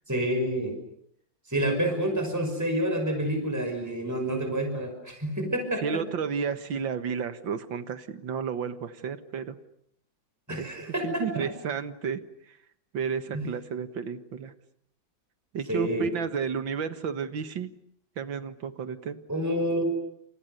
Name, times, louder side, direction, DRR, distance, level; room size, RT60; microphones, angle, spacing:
voice 1, 0.1-0.7 1.5-6.0 10.5-11.5 13.3-13.5 15.7-16.1 19.3-19.8, right 1 dB, 10° right, 4 dB, 5.8 m, -28 dB
voice 2, 5.8-9.5 10.6-10.7 11.0-12.2 12.9-14.5 15.5-17.7 18.2-19.2, right 6 dB, 85° right, 11 dB, 2.3 m, -32 dB
29.5 x 28.5 x 6.7 m, 0.72 s
omnidirectional pair, 2.0 m